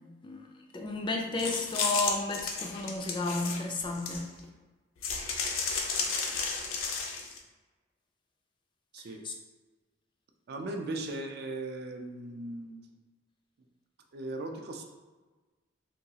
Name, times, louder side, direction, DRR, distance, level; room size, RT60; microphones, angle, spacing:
voice 1, 0.7-4.3 9.2-9.3, left 3 dB, 25° left, 2 dB, 0.3 m, -32 dB
sound 1, 1.4-4.4 5.0-7.4, left 4 dB, 85° left, 0.5 m, -33 dB
voice 2, 10.5-12.9 14.1-14.8, right 2 dB, 55° right, 4 dB, 0.4 m, -38 dB
3.8 x 2.3 x 2.7 m, 1.3 s
head